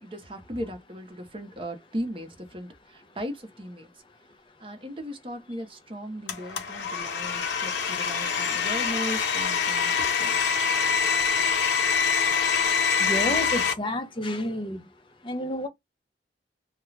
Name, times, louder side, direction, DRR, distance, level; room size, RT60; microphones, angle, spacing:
voice 1, 0.0-4.0 4.6-10.4, equal, 30° right, 0.8 m, -37 dB
Domestic sounds home sounds, 6.3-13.7, left 6 dB, 75° left, 0.8 m, -25 dB
voice 2, 13.0-14.8 15.2-15.7, left 1 dB, 25° left, 0.7 m, -30 dB
2.3 x 2.3 x 3.1 m
head